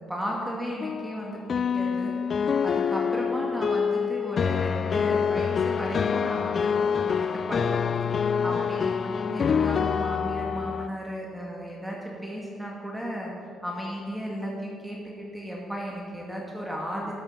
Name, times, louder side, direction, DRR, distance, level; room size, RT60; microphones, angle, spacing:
voice 1, 0.0-2.1 2.6-7.8 8.4-13.3 13.6-17.1, equal, 5° right, -2 dB, 2.1 m, -34 dB
sound 1, 0.8-10.9, left 6 dB, 45° left, 0.3 m, -26 dB
12.5 x 7.2 x 6.5 m, 2.7 s
cardioid pair, 90°, 0 cm